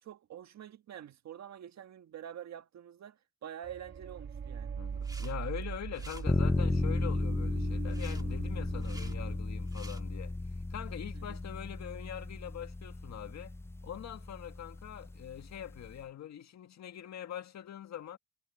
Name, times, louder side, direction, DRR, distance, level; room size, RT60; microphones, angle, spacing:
voice 1, 0.0-4.8 11.1-11.4, right 10 dB, 65° right, 1.6 m, -47 dB
sound 1, 3.6-9.4, right 6 dB, 40° right, 1.3 m, -41 dB
voice 2, 4.8-10.4 10.7-13.6 13.8-18.2, left 10 dB, 65° left, 1.9 m, -43 dB
sound 2, 4.9-5.3 5.6-6.2 7.9-8.2 8.7-9.1 9.6-10.0, right 2 dB, 10° right, 1.7 m, -51 dB
sound 3, 6.3-16.0, left 2 dB, 10° left, 0.5 m, -34 dB
cardioid pair, 90°, 30 cm